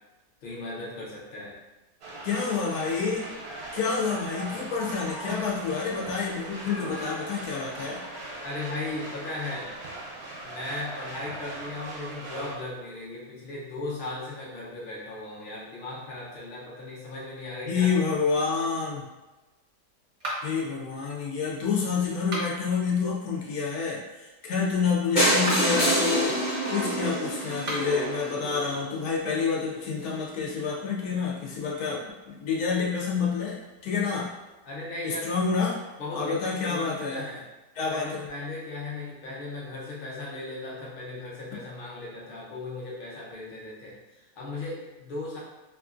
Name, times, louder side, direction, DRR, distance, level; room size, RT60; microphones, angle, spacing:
voice 1, 0.4-1.6 8.4-9.7 10.4-18.0 34.6-35.3 36.0-37.5 37.9-45.4, left 2 dB, 50° left, -5 dB, 0.6 m, -37 dB
sound 1, 2.0-12.6, right 2 dB, 85° right, 1.2 m, -39 dB
voice 2, 2.2-3.3 3.7-8.0 17.7-19.1 20.4-26.4 26.7-33.6 33.8-34.3 35.0-35.8 36.1-37.2 37.8-38.3, left 5 dB, 75° left, -3 dB, 1.1 m, -28 dB
sound 2, 20.2-20.7 22.2-22.8 25.3-25.8 27.5-28.0, right 1 dB, 45° right, 0.5 m, -34 dB
sound 3, 25.2-29.0 29.7-29.8 30.0-30.1 30.4-30.5 30.7-30.8, right 1 dB, 35° left, 1.0 m, -26 dB
2.9 x 2.5 x 2.4 m, 1.1 s
omnidirectional pair, 1.8 m